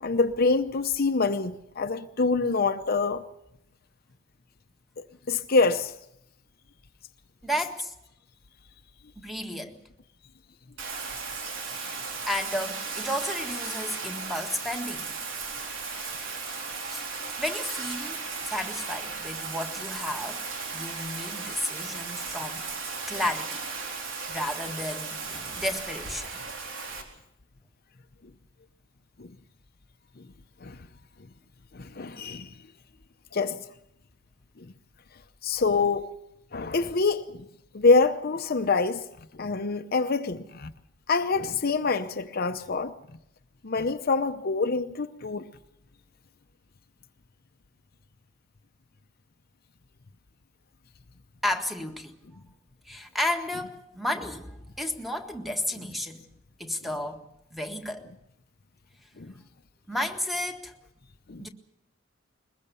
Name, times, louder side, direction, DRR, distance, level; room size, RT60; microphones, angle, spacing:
voice 1, 0.0-3.2 5.0-5.9 29.2-29.3 30.6-30.8 31.7-32.5 33.3-33.6 34.6-34.7 35.4-36.1 36.5-37.4 37.7-39.1 39.3-40.7 41.1-42.9 43.6-45.5 59.2-59.3 61.3-61.5, left 4 dB, 50° left, 0.8 m, -25 dB
voice 2, 7.4-7.9 9.2-9.8 11.7-15.1 16.1-16.4 16.9-17.0 17.4-18.2 18.5-20.4 20.7-22.7 23.1-23.6 24.3-26.3 51.4-52.2 52.9-56.2 56.6-57.3 57.5-58.0 59.9-60.7 61.4-61.5, left 1 dB, ahead, 1.7 m, -32 dB
Bathtub (filling or washing), 10.8-27.0, right 4 dB, 80° right, 3.9 m, -36 dB
22.0 x 21.0 x 6.9 m
head